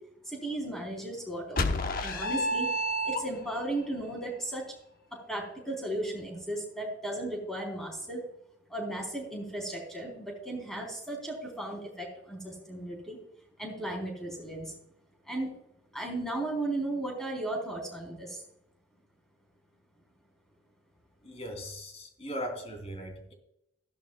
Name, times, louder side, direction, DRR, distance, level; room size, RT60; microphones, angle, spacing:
voice 1, 0.2-1.6 2.0-2.7 3.0-4.7 5.1-8.2 8.7-13.2 13.6-14.7 15.2-15.5 15.9-18.4, right 1 dB, ahead, 0 dB, 3.8 m, -35 dB
sound 1, 1.6-3.7, equal, 45° left, 1.0 m, -29 dB
voice 2, 21.2-23.3, equal, 30° left, 3 dB, 3.1 m, -39 dB
15.0 x 11.5 x 2.3 m, 0.81 s
head